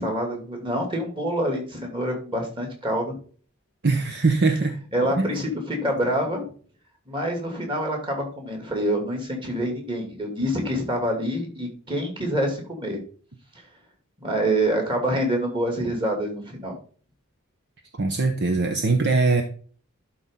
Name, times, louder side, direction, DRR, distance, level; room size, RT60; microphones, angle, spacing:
voice 1, 0.0-3.1 4.9-6.4 7.1-13.0 14.2-16.7, right 1 dB, 20° right, 1 dB, 2.5 m, -26 dB
voice 2, 3.8-4.8 5.2-5.4 18.0-19.4, right 3 dB, 50° right, 5 dB, 0.8 m, -21 dB
11.5 x 4.1 x 3.7 m, 0.43 s
head